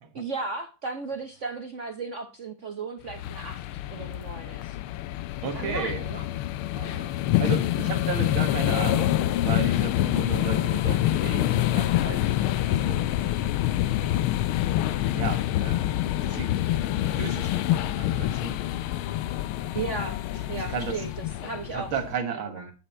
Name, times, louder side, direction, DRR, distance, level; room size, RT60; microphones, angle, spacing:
voice 1, 0.1-3.6 3.9-4.8 5.5-6.2 19.7-21.1 21.4-21.9 22.5-22.6, right 4 dB, 50° right, 7 dB, 0.8 m, -35 dB
sound 1, 3.1-22.1, left 13 dB, 80° left, 1.4 m, -26 dB
voice 2, 5.4-6.1 6.8-12.2 12.8-13.0 14.0-14.4 15.1-16.5 16.8-18.6 20.7-21.0 21.7-22.7, right 6 dB, 70° right, 5 dB, 2.3 m, -35 dB
9.7 x 7.4 x 4.3 m, 0.31 s
omnidirectional pair, 2.4 m